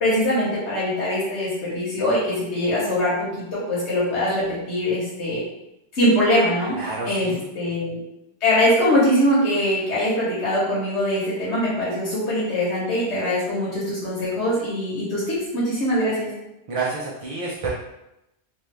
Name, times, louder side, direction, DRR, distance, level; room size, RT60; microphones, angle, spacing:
voice 1, 0.0-5.4 5.9-8.0 8.4-16.3, left 1 dB, 80° left, -7 dB, 1.2 m, -22 dB
voice 2, 6.8-7.4 16.7-17.7, right 4 dB, 50° right, -6 dB, 0.4 m, -29 dB
2.7 x 2.3 x 3.2 m, 0.88 s
omnidirectional pair, 1.1 m